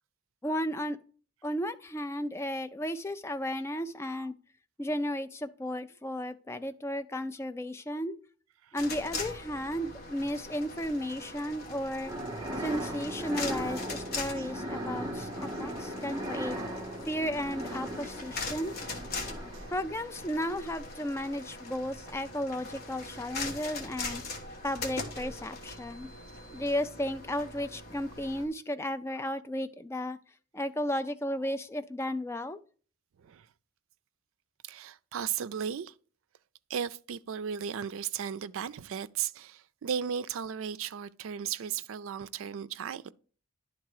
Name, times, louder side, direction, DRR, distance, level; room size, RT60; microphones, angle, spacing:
voice 1, 0.4-1.0 1.4-4.3 4.8-8.2 8.7-12.1 12.6-16.6 17.1-18.8 19.7-24.2 24.6-26.1 26.5-30.2 30.5-32.6, equal, 10° left, 0.3 m, -34 dB
sound 1, 8.8-28.5, left 3 dB, 50° left, 1.3 m, -41 dB
sound 2, 11.9-19.9, equal, 15° right, 0.9 m, -38 dB
voice 2, 34.6-35.9 36.7-43.1, right 8 dB, 75° right, 0.4 m, -36 dB
10.5 x 3.7 x 4.8 m
head